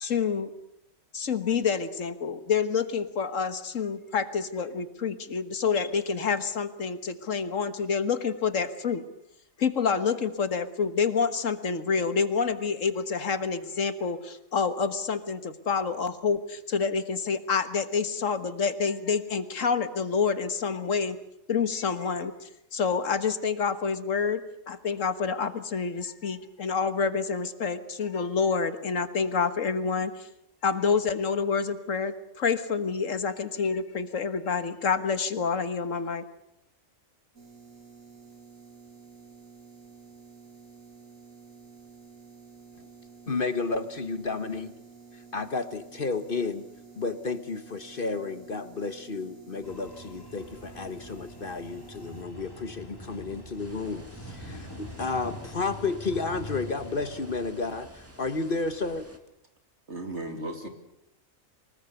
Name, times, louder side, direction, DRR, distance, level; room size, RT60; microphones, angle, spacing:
voice 1, 0.0-0.5 1.1-9.0 9.6-21.2 21.5-30.3 30.6-36.3, left 5 dB, 75° left, 11 dB, 1.8 m, -28 dB
sound 1, 37.3-52.2, right 5 dB, 85° right, 3.1 m, -51 dB
voice 2, 43.3-44.7 45.1-46.6 47.0-59.1, left 3 dB, 45° left, 11 dB, 1.4 m, -32 dB
sound 2, 49.6-57.5, left 1 dB, 15° left, 2.6 m, -44 dB
sound 3, 53.6-59.2, equal, 10° right, 2.2 m, -48 dB
voice 3, 59.9-60.7, right 1 dB, 60° right, 5 dB, 3.3 m, -35 dB
24.5 x 20.0 x 8.1 m, 0.81 s
omnidirectional pair, 1.3 m